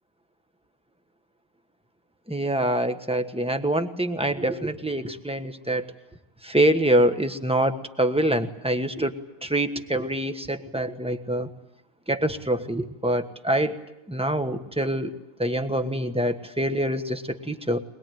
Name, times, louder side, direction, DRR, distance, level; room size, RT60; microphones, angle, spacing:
voice 1, 2.3-5.8 6.4-9.1 9.4-11.5 12.1-13.8 14.1-17.8, right 1 dB, 5° right, 7 dB, 1.1 m, -25 dB
22.5 x 21.5 x 9.2 m, 0.88 s
omnidirectional pair, 1.7 m